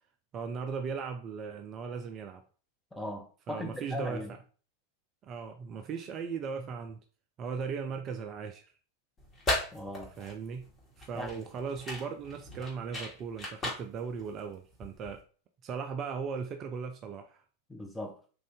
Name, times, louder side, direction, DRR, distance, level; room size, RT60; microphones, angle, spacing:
voice 1, 0.3-2.4 3.5-4.2 5.2-7.0 7.4-8.7 10.2-10.7 11.0-15.2 15.6-17.4, right 5 dB, 35° right, 0.3 m, -37 dB
voice 2, 2.9-4.3 9.7-10.1 11.1-11.4 17.7-18.2, left 1 dB, 5° left, 0.7 m, -39 dB
sound 1, 9.2-15.2, left 1 dB, 25° left, 1.4 m, -37 dB
3.4 x 2.6 x 3.4 m
figure-of-eight pair, 90°, 0 cm